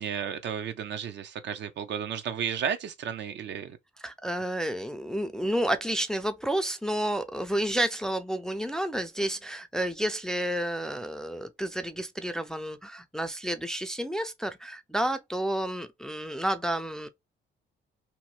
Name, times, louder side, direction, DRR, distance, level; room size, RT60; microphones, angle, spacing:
voice 1, 0.0-3.8, right 8 dB, 65° right, 0.6 m, -33 dB
voice 2, 4.0-17.1, right 1 dB, 5° left, 0.4 m, -30 dB
2.9 x 2.1 x 3.0 m
cardioid pair, 90°, 20 cm